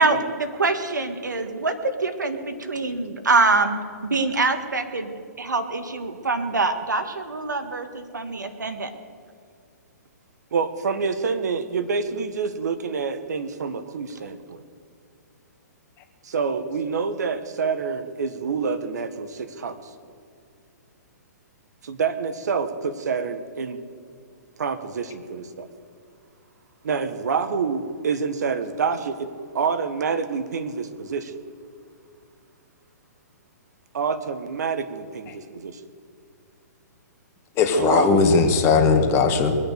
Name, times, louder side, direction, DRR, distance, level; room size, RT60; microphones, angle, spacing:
voice 1, 0.0-5.1 5.4-8.9, right 3 dB, 90° right, 8 dB, 1.8 m, -24 dB
voice 2, 10.5-14.6 16.2-19.8 21.8-23.8 24.6-25.7 26.8-31.3 33.9-35.8 37.7-38.3, right 5 dB, 70° right, 10 dB, 1.5 m, -27 dB
voice 3, 37.6-39.6, left 5 dB, 25° left, 5 dB, 1.7 m, -18 dB
22.5 x 8.9 x 6.8 m, 2.3 s
hypercardioid pair, 130°, 9 cm